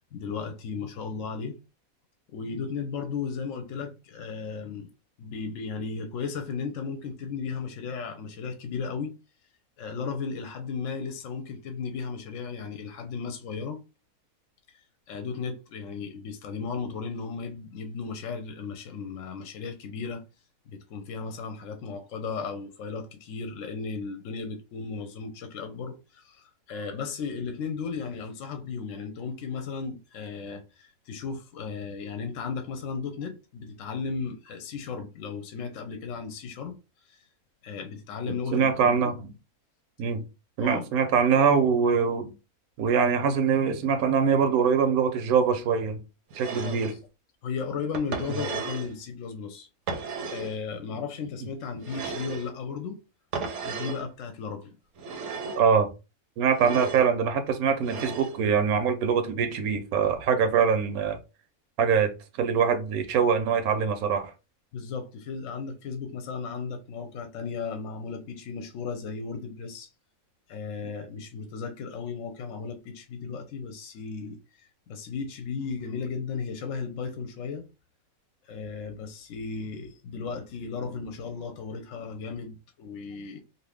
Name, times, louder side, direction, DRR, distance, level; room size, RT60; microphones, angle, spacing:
voice 1, 0.1-1.6 2.3-4.9 5.2-9.2 9.8-13.8 14.7-14.8 15.1-20.3 20.7-37.2 37.6-39.1 40.6-40.9 46.6-47.0 47.4-49.7 50.3-53.0 53.6-54.8 64.7-69.9 70.5-77.7 78.4-83.4, left 5 dB, 70° left, 0.9 m, -35 dB
voice 2, 38.5-39.3 40.0-40.3 40.6-42.3 42.8-46.0 46.4-46.9 55.5-55.9 56.4-61.2 61.8-64.3, right 6 dB, 90° right, 1.1 m, -23 dB
sound 1, 46.3-47.0 47.9-48.9 49.9-50.6 51.8-52.5 53.3-54.0 55.0-55.7 56.5-57.1 57.8-58.4, right 5 dB, 65° right, 0.8 m, -35 dB
2.6 x 2.6 x 3.4 m
omnidirectional pair, 1.5 m